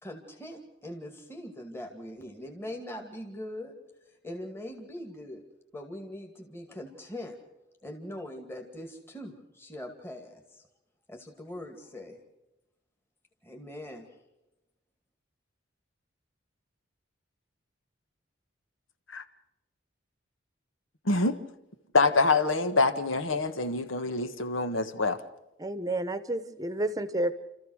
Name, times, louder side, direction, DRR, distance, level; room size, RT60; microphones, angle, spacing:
voice 1, 0.0-3.7 4.1-5.4 5.7-7.4 7.8-10.6 11.1-12.2 13.4-14.1, left 1 dB, 10° left, 2 dB, 2.2 m, -42 dB
voice 2, 21.0-21.4 21.9-25.2, left 3 dB, 85° left, 10 dB, 1.5 m, -25 dB
voice 3, 25.6-27.3, right 1 dB, 20° right, 12 dB, 1.0 m, -30 dB
30.0 x 14.0 x 6.4 m, 0.94 s
head